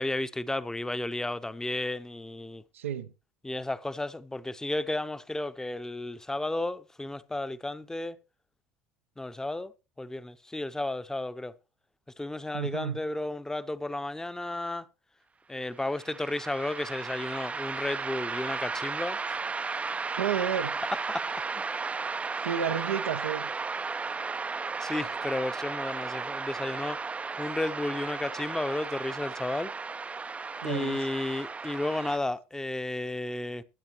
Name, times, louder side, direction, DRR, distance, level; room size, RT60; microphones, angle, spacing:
voice 1, 0.0-2.6 3.4-8.2 9.2-9.7 10.0-11.5 12.2-14.9 15.5-19.4 21.1-21.2 24.8-27.0 27.4-29.7 30.6-33.6, left 2 dB, 10° left, 0.9 m, -33 dB
voice 2, 2.7-3.1 12.5-13.0 20.2-20.7 22.4-23.5 30.6-31.1, right 8 dB, 80° right, 0.7 m, -31 dB
sound 1, 15.8-32.2, right 4 dB, 20° right, 0.6 m, -35 dB
22.0 x 8.8 x 3.0 m
hypercardioid pair, 75°, 7 cm